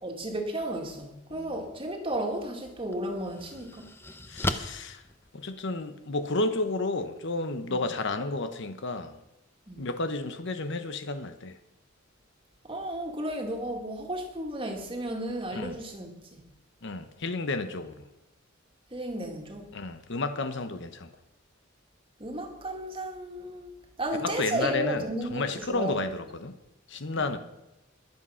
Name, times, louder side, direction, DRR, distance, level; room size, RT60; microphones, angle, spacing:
voice 1, 0.0-3.9 7.7-7.8 9.7-9.8 12.7-16.4 18.9-19.7 22.2-23.7 24.0-26.0 27.2-27.3, right 1 dB, 25° right, 2.1 m, -34 dB
sound 1, 2.2-2.3 2.9-5.9, left 2 dB, 10° left, 0.8 m, -36 dB
voice 2, 4.3-5.0 5.3-9.2 9.8-11.5 15.5-15.8 16.8-18.0 19.7-21.1 24.2-25.0 25.3-26.5 26.9-27.4, left 3 dB, 60° left, 1.0 m, -31 dB
22.0 x 7.8 x 5.7 m
head